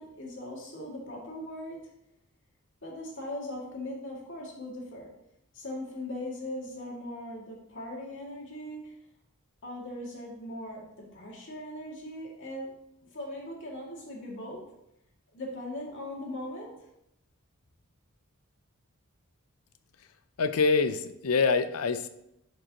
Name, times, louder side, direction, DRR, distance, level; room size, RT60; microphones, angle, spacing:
voice 1, 0.0-1.8 2.8-5.1 5.5-8.9 9.6-12.7 13.1-14.6 15.3-16.9, left 1 dB, 60° left, -2 dB, 2.2 m, -39 dB
voice 2, 20.4-22.1, left 4 dB, 90° left, 11 dB, 0.6 m, -25 dB
11.0 x 5.2 x 2.9 m, 0.82 s
head